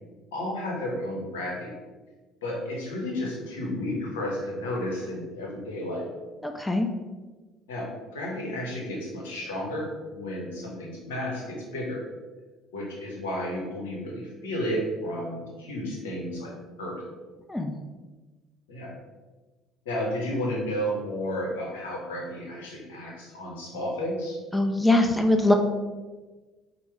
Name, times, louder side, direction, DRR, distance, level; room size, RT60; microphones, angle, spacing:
voice 1, 0.3-1.7 2.4-6.1 7.7-12.0 12.7-16.5 16.8-17.0 18.7-18.9 19.8-24.4, left 1 dB, 80° left, -2 dB, 0.9 m, -32 dB
voice 2, 6.4-6.9 17.5-17.7 24.5-25.5, left 1 dB, 10° left, 4 dB, 0.4 m, -22 dB
4.4 x 2.1 x 3.3 m, 1.3 s
hypercardioid pair, 60°, 0 cm